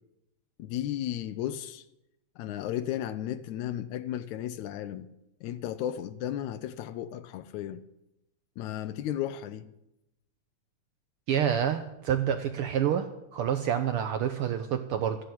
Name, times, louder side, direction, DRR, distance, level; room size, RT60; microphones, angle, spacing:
voice 1, 0.6-1.8 2.4-5.1 5.4-7.8 8.6-9.7, left 11 dB, 85° left, 2.0 m, -34 dB
voice 2, 11.3-15.2, right 9 dB, 80° right, 1.2 m, -28 dB
14.0 x 7.7 x 8.5 m
omnidirectional pair, 3.3 m